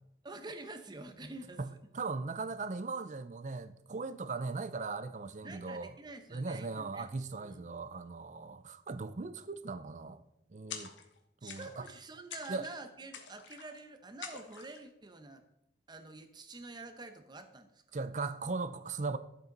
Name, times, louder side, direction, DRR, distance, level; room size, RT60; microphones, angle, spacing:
voice 1, 0.2-1.8 5.4-7.1 7.4-7.7 11.4-15.4 15.9-18.0, right 3 dB, 25° right, 0.9 m, -47 dB
voice 2, 1.9-5.9 6.3-10.2 10.5-10.9 11.4-11.9 12.5-12.7 17.9-19.2, right 3 dB, 40° right, 0.5 m, -38 dB
sound 1, 10.7-11.2 11.5-12.0 12.3-12.8 13.1-13.8 14.2-14.8, left 6 dB, 85° left, 1.2 m, -47 dB
12.0 x 7.5 x 3.9 m
head